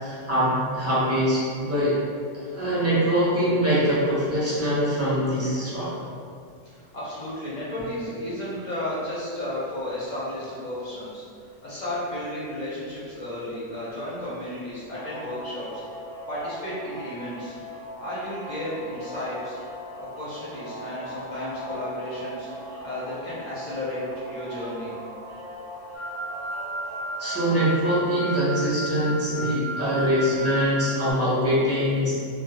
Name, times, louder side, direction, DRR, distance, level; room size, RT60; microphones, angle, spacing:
voice 1, 0.0-1.9 2.3-5.9 27.2-32.1, equal, 15° right, -11 dB, 0.5 m, -23 dB
voice 2, 6.6-15.8 16.3-17.5 18.0-19.6 20.0-24.9, left 1 dB, 50° left, -9 dB, 0.6 m, -33 dB
sound 1, 14.9-27.6, right 1 dB, 50° right, 0.9 m, -39 dB
sound 2, 25.9-31.1, right 1 dB, 85° right, 1.2 m, -33 dB
2.2 x 2.1 x 2.8 m, 2.3 s
omnidirectional pair, 1.3 m